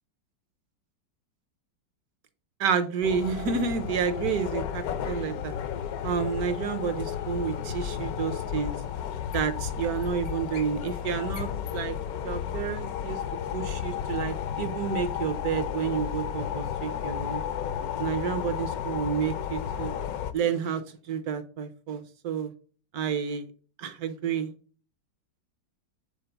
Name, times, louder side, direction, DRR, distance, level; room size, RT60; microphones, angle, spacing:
voice 1, 2.6-5.5 6.0-8.7 9.3-11.9 12.2-13.2 13.5-17.4 18.0-19.9 20.3-20.8 21.1-22.5 22.9-23.5 23.8-24.5, right 7 dB, 65° right, 11 dB, 1.2 m, -30 dB
sound 1, 3.0-20.3, left 9 dB, 65° left, 0.9 m, -33 dB
6.9 x 3.8 x 3.8 m, 0.39 s
omnidirectional pair, 1.9 m